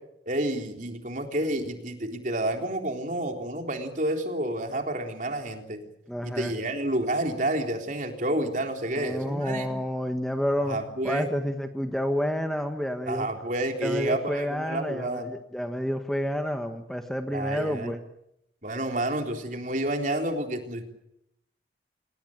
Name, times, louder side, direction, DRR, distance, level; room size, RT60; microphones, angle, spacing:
voice 1, 0.3-5.8 6.2-9.7 10.7-11.3 13.1-15.3 17.3-17.9 18.6-20.8, right 1 dB, 45° right, 4 dB, 3.8 m, -29 dB
voice 2, 6.1-6.5 8.9-10.8 11.0-13.3 13.8-18.0, equal, ahead, 6 dB, 1.4 m, -29 dB
27.5 x 19.0 x 8.9 m, 0.80 s
head